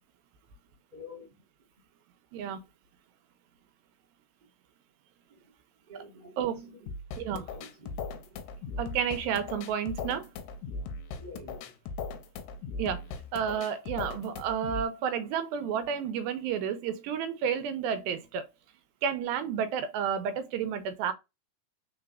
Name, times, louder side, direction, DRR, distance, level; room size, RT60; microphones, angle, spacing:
voice 1, 0.9-1.3 5.9-6.5 7.3-7.9 11.2-11.6, left 2 dB, 45° right, 0.6 m, -47 dB
voice 2, 6.4-6.7 7.2-7.6 8.8-10.3 12.8-18.5 19.0-21.1, right 8 dB, 90° right, 2.4 m, -31 dB
sound 1, 6.9-14.9, left 4 dB, 75° left, 1.9 m, -39 dB
4.9 x 4.1 x 2.4 m
omnidirectional pair, 4.1 m